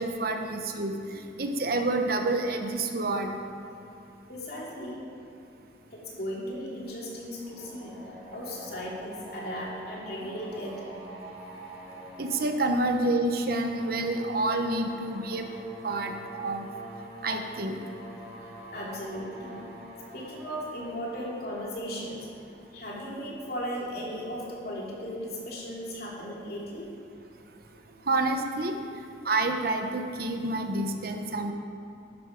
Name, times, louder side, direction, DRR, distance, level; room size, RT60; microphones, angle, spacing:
voice 1, 0.0-3.3 12.2-15.5 15.8-16.7 17.2-17.8 28.1-28.8 29.2-31.5, right 2 dB, 55° right, 5 dB, 1.0 m, -28 dB
voice 2, 4.3-5.0 5.9-8.0 8.3-10.9 18.7-19.6 20.1-22.3 22.7-26.9, equal, 55° left, -4 dB, 3.0 m, -36 dB
sound 1, 7.3-23.2, equal, 10° right, 3.4 m, -46 dB
12.5 x 11.0 x 5.2 m, 2.8 s
head